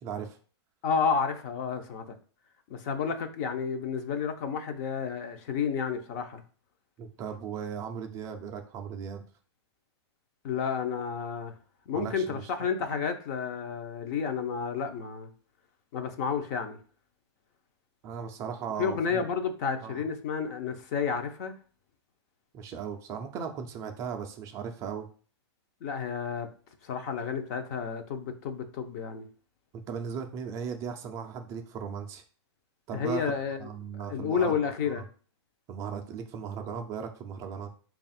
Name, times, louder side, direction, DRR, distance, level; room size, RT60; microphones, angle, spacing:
voice 1, 0.0-0.4 7.0-9.2 11.9-12.7 18.0-19.2 19.8-20.0 22.5-25.1 29.7-32.2 32.9-33.2 33.6-35.0 35.7-37.7, right 7 dB, 20° right, 0.4 m, -37 dB
voice 2, 0.8-2.0 2.7-6.4 10.4-11.5 11.9-15.3 15.9-16.8 18.8-21.5 25.8-26.5 26.8-29.3 32.9-33.7 34.1-35.1, left 6 dB, 35° left, 0.5 m, -31 dB
3.4 x 2.3 x 4.1 m
hypercardioid pair, 150°, 14 cm